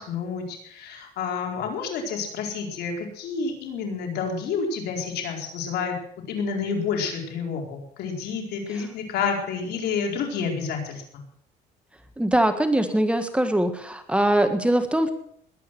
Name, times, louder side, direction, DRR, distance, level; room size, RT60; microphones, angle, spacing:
voice 1, 0.0-6.0 6.3-11.2, left 5 dB, 75° left, 2 dB, 4.5 m, -29 dB
voice 2, 12.2-15.1, right 1 dB, 5° right, 7 dB, 1.6 m, -22 dB
21.0 x 9.1 x 6.1 m, 0.69 s
cardioid pair, 110°, 17 cm